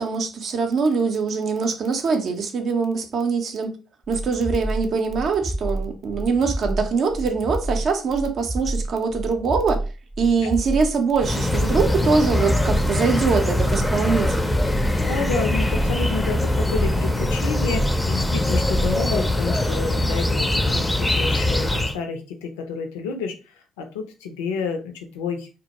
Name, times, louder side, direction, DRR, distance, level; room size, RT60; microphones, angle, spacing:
voice 1, 0.0-3.7 4.1-9.8 10.2-14.5, right 5 dB, 55° right, 0.5 m, -23 dB
sound 1, 4.1-19.0, right 1 dB, 15° right, 0.7 m, -29 dB
sound 2, 11.2-22.0, left 1 dB, 10° left, 0.4 m, -22 dB
voice 2, 15.0-23.4 23.8-25.5, left 5 dB, 80° left, 0.4 m, -30 dB
2.2 x 2.0 x 2.8 m
hypercardioid pair, 50°, 0 cm